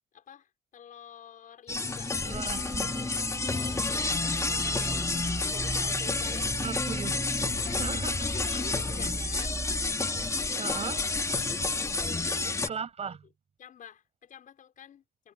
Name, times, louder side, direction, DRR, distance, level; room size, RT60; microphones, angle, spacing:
voice 1, 0.1-2.4 2.8-3.1 3.5-6.7 7.5-8.0 8.2-9.6 10.5-10.7 11.3-12.7 13.1-13.2 13.6-15.3, left 9 dB, 50° left, 5.9 m, -48 dB
sound 1, 1.7-12.7, left 3 dB, 20° left, 3.1 m, -30 dB
voice 2, 2.3-2.9 6.6-7.2 7.8-8.3 9.0-9.1 10.6-11.0 12.7-13.3, right 6 dB, 40° right, 7.9 m, -37 dB
sound 2, 2.5-9.9, right 2 dB, 10° right, 1.4 m, -38 dB
cardioid pair, 110°, 17 cm